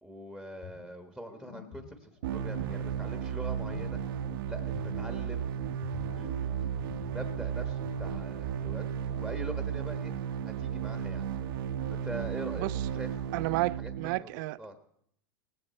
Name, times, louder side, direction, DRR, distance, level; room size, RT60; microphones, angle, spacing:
voice 1, 0.0-4.0 4.5-5.8 6.1-10.1 10.4-11.3 11.9-13.1 13.8-14.3 14.6-14.8, right 1 dB, 5° left, 1.3 m, -43 dB
sound 1, 0.6-6.4 6.6-8.2, left 7 dB, 55° left, 5.2 m, -48 dB
sound 2, 2.2-14.2, right 8 dB, 80° right, 1.1 m, -34 dB
voice 2, 13.3-14.6, right 20 dB, 60° right, 0.5 m, -31 dB
18.0 x 15.5 x 4.3 m
supercardioid pair, 130°, 12 cm